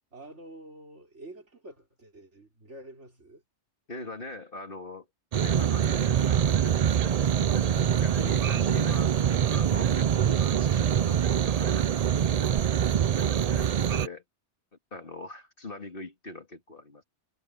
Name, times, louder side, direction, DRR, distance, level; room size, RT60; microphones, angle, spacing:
voice 1, 0.1-3.4, right 1 dB, 75° right, 5.1 m, -48 dB
voice 2, 3.9-5.1 5.4-7.7 8.0-9.1 9.5-12.5 13.1-14.2 14.9-17.0, left 2 dB, 50° left, 2.8 m, -42 dB
sound 1, 5.3-14.1, right 9 dB, 55° right, 0.4 m, -24 dB
omnidirectional pair, 1.2 m